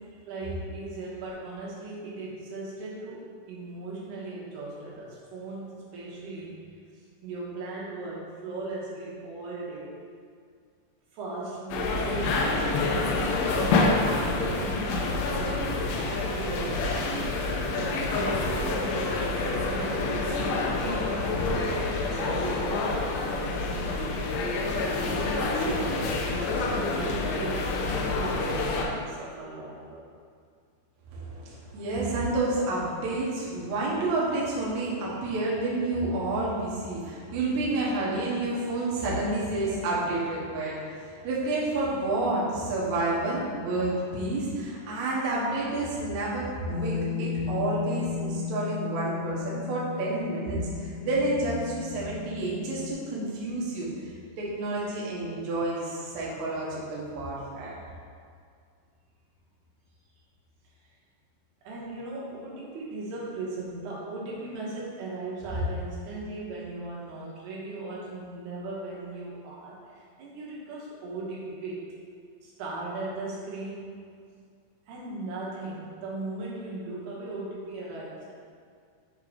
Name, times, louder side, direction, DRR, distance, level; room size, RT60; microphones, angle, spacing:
voice 1, 0.2-6.6 6.9-10.0 11.1-17.1 17.7-23.9 24.6-25.0 25.5-30.1 61.6-71.9 72.4-74.0 74.9-78.3, right 2 dB, 80° right, -6 dB, 3.2 m, -38 dB
sound 1, 11.7-28.9, left 3 dB, 80° left, 2.1 m, -27 dB
voice 2, 31.1-57.7, right 2 dB, 60° right, -6 dB, 2.2 m, -29 dB
Bass guitar, 46.7-52.9, left 7 dB, 65° left, 2.3 m, -35 dB
6.9 x 3.7 x 4.8 m, 2.2 s
omnidirectional pair, 4.6 m